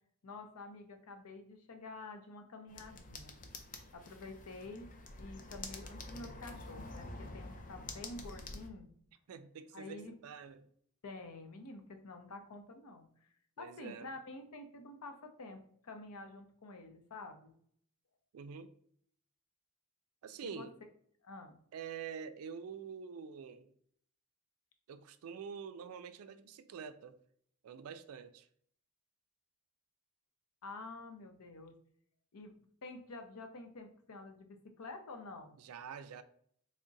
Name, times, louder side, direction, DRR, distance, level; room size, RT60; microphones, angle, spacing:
voice 1, 0.2-3.3 3.9-4.9 5.2-8.9 9.7-10.1 11.0-13.3 13.6-17.5 20.4-20.7 21.2-21.6 30.6-31.7 32.3-32.5 32.8-35.6, left 3 dB, 80° left, 0.6 m, -49 dB
sound 1, 2.7-8.7, left 2 dB, 35° left, 0.5 m, -48 dB
voice 2, 9.3-10.7 13.6-14.1 18.3-18.7 20.2-20.7 21.7-23.7 24.9-27.2 27.6-28.5 35.6-36.2, right 6 dB, 75° right, 0.3 m, -46 dB
3.6 x 2.1 x 3.9 m
head